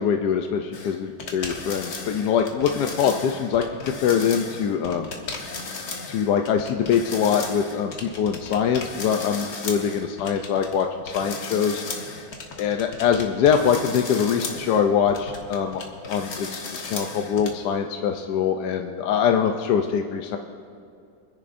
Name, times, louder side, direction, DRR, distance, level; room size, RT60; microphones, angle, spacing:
voice 1, 0.0-5.1 6.1-11.8 12.6-20.4, left 7 dB, 75° left, 4 dB, 1.2 m, -23 dB
sound 1, 0.7-17.5, left 3 dB, 60° left, 1.7 m, -35 dB
27.0 x 10.5 x 2.6 m, 2.5 s
omnidirectional pair, 1.9 m